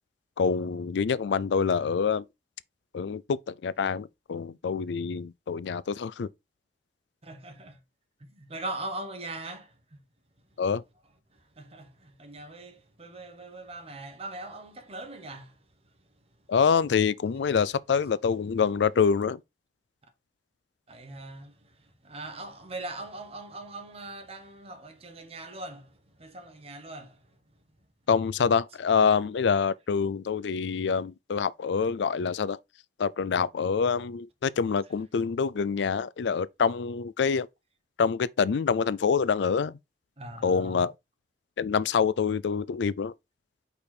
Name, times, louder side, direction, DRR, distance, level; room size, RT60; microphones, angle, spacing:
voice 1, 0.4-2.3 2.9-6.3 10.6-10.8 16.5-19.4 28.1-32.6 33.0-37.5 38.0-39.8 40.4-40.9 41.6-43.1, left 6 dB, 85° left, 0.4 m, -26 dB
voice 2, 7.2-7.8 8.3-9.8 11.3-15.7 20.9-27.4 40.2-40.9, right 2 dB, 35° right, 1.3 m, -41 dB
5.3 x 4.4 x 4.1 m
head